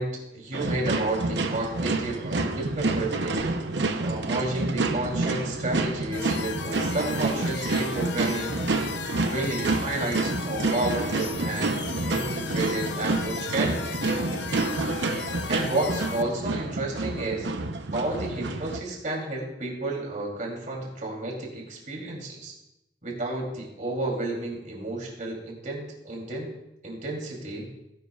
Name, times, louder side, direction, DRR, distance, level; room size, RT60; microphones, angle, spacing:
voice 1, 0.0-3.5 4.0-8.6 9.2-13.9 15.5-17.5 17.9-22.5 23.0-26.5 26.8-27.7, right 2 dB, 45° right, -1 dB, 3.2 m, -31 dB
sound 1, 0.5-18.8, right 3 dB, 80° right, 0.8 m, -28 dB
sound 2, 6.1-16.2, left 7 dB, 75° left, 0.6 m, -36 dB
17.0 x 10.5 x 2.4 m, 0.88 s
head